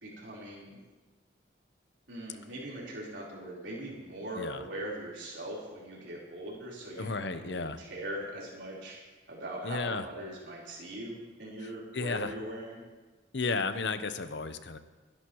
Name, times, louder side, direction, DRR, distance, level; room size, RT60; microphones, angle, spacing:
voice 1, 0.0-0.8 2.1-9.0 9.3-12.8, right 1 dB, 85° right, -5 dB, 4.0 m, -41 dB
voice 2, 4.3-4.7 7.0-7.8 9.6-10.0 11.6-12.3 13.3-14.8, left 4 dB, 75° left, 10 dB, 0.8 m, -33 dB
28.5 x 11.0 x 3.1 m, 1.3 s
head